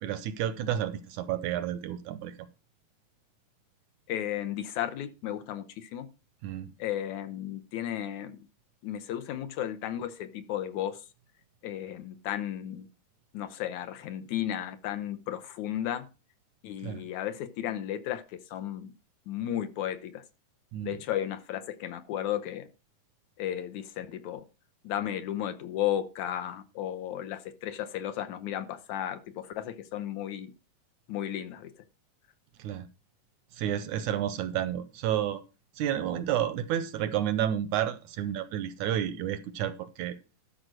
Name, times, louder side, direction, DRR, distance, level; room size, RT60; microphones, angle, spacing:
voice 1, 0.0-2.5 6.4-6.7 16.8-17.0 20.7-21.0 32.6-32.9 33.5-35.4 35.8-40.2, right 10 dB, 80° right, 13 dB, 1.8 m, -31 dB
voice 2, 4.1-6.1 6.8-8.5 8.8-11.1 11.6-12.9 13.3-16.1 16.6-18.9 19.3-20.2 20.8-22.7 23.4-24.4 24.8-30.5 31.1-31.7, left 11 dB, 70° left, 10 dB, 1.8 m, -34 dB
13.0 x 5.0 x 6.3 m, 0.31 s
omnidirectional pair, 4.0 m